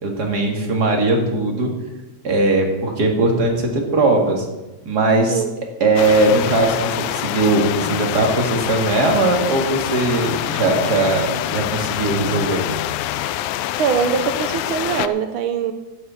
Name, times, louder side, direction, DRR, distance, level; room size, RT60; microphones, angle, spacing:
voice 1, 0.0-1.7 2.2-4.5 4.9-5.4 5.8-12.6, right 2 dB, 35° right, 1 dB, 2.3 m, -19 dB
sound 1, 6.0-15.1, left 13 dB, 85° left, 1.9 m, -25 dB
voice 2, 13.8-15.7, right 7 dB, 80° right, 7 dB, 1.1 m, -22 dB
12.0 x 6.6 x 8.4 m, 1.1 s
omnidirectional pair, 3.4 m